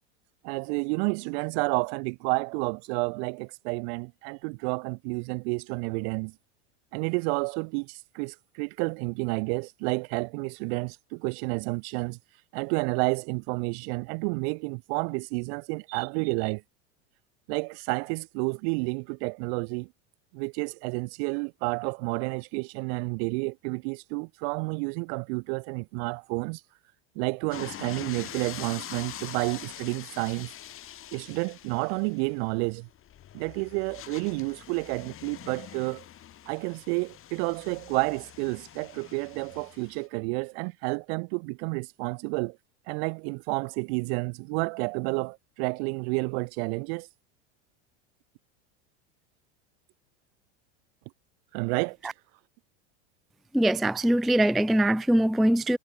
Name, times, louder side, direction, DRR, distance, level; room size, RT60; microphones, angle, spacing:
voice 1, 0.4-6.3 6.9-12.2 12.5-16.6 17.5-19.9 20.3-26.6 27.1-30.5 31.1-32.9 33.3-36.0 36.5-42.6 42.9-47.1 51.5-52.1, right 35 dB, 60° right, 1.6 m, -30 dB
sound 1, 27.5-40.1, left 11 dB, 35° left, 4.9 m, -44 dB
voice 2, 53.5-55.8, right 1 dB, ahead, 0.4 m, -22 dB
hypercardioid pair, 110°, 36 cm